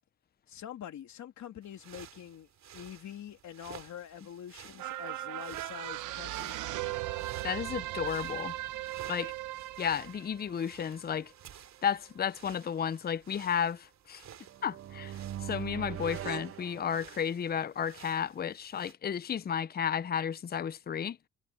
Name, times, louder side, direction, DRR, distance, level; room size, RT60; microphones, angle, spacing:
voice 1, 0.5-6.6, left 10 dB, 65° left, 3.3 m, -45 dB
sound 1, 1.6-18.9, right 10 dB, 65° right, 2.7 m, -54 dB
sound 2, 4.8-11.4 11.9-12.0, right 16 dB, 90° right, 0.9 m, -38 dB
voice 2, 7.4-8.5 9.1-9.3 9.8-11.3 11.8-14.2 14.6-21.2, left 8 dB, 30° left, 0.6 m, -33 dB
sound 3, 14.5-17.5, right 11 dB, 50° right, 0.6 m, -41 dB
cardioid pair, 90°, 30 cm